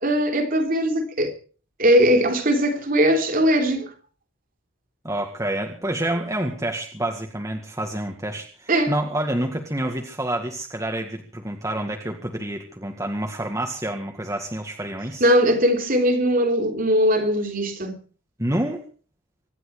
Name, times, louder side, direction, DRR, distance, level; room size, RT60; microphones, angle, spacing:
voice 1, 0.0-1.3 1.8-3.9 8.7-8.9 15.2-17.9, equal, 45° right, 3.5 m, -20 dB
voice 2, 5.0-15.3 18.4-18.8, right 1 dB, 15° right, 2.0 m, -28 dB
25.0 x 11.0 x 4.9 m
head